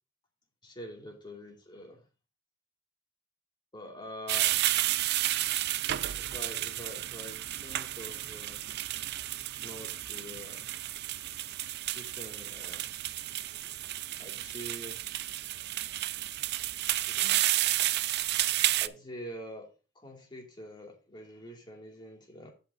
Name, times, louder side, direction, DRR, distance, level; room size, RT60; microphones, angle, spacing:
voice 1, 0.6-2.0 3.7-4.6 6.2-8.6 9.6-10.7 11.8-12.9 14.2-15.0 17.1-17.5 18.8-22.5, equal, 25° left, 2.4 m, -45 dB
sound 1, 4.3-18.9, right 14 dB, 55° right, 0.4 m, -31 dB
15.0 x 5.5 x 2.6 m
head